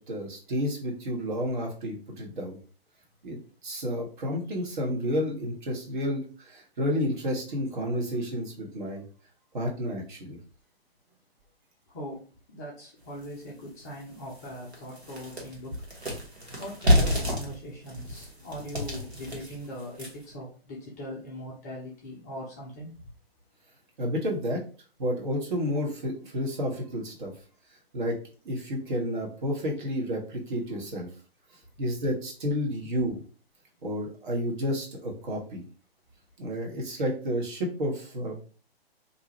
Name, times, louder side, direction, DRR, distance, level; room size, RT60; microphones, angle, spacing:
voice 1, 0.0-2.6 3.2-9.0 9.5-10.4 24.0-24.6 25.0-27.3 27.9-28.2 28.4-31.1 31.8-33.2 33.8-35.6 36.4-38.4, equal, 50° right, 0 dB, 1.1 m, -31 dB
voice 2, 11.9-12.2 12.5-15.7 16.6-22.9, equal, 15° left, -4 dB, 0.4 m, -40 dB
sound 1, 13.2-13.3 13.8-13.9 14.3-20.3, left 1 dB, 85° right, 1.2 m, -28 dB
2.7 x 2.4 x 3.0 m, 0.38 s
figure-of-eight pair, 120°, 32 cm